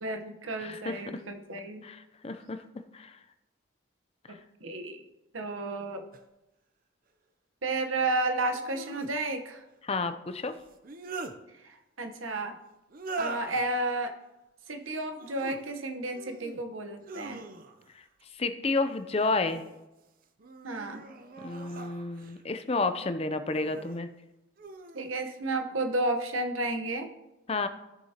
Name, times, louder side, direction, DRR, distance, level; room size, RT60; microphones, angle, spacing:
voice 1, 0.0-1.8 4.3-5.0 5.3-6.0 7.6-9.6 11.6-12.6 13.2-14.2 14.7-17.4 20.6-21.0 24.9-27.1, right 2 dB, 90° right, 5 dB, 1.1 m, -32 dB
voice 2, 0.6-1.0 1.8-2.6 2.9-3.1 9.8-10.5 18.4-19.6 21.4-24.1 27.5-27.7, left 3 dB, 30° left, 10 dB, 0.5 m, -30 dB
sound 1, 6.1-6.2 8.5-9.1 10.6-11.4 12.9-13.6 15.1-15.6 16.1-16.6 17.0-17.9 19.1-19.8 20.4-22.4 23.5-24.0 24.6-25.1, right 3 dB, 45° right, 0.6 m, -42 dB
15.0 x 6.8 x 2.9 m, 0.97 s
head